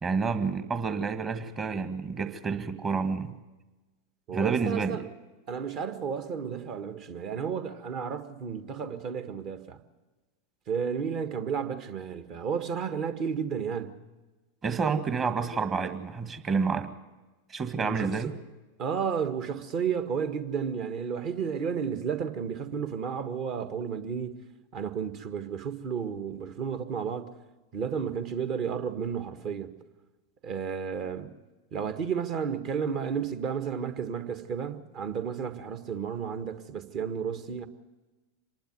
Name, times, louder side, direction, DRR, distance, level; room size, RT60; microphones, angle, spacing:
voice 1, 0.0-3.4 4.3-5.0 14.6-16.9 17.5-18.3, right 5 dB, 25° right, 1.7 m, -29 dB
voice 2, 4.3-5.1 5.5-9.8 10.7-14.0 17.8-18.3 18.8-24.4 24.7-27.3 27.7-29.8 30.4-31.3 31.7-37.7, right 7 dB, 40° right, 1.6 m, -32 dB
26.5 x 11.5 x 9.3 m
figure-of-eight pair, 90°, 0 cm